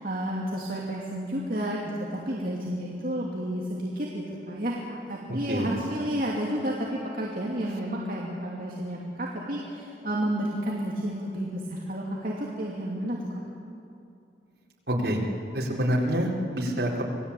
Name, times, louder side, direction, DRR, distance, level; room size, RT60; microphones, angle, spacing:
voice 1, 0.0-13.4, equal, 50° right, -4 dB, 2.9 m, -31 dB
voice 2, 14.9-15.2 15.5-17.0, equal, 70° right, -3 dB, 4.4 m, -26 dB
28.0 x 19.0 x 8.6 m, 2.5 s
head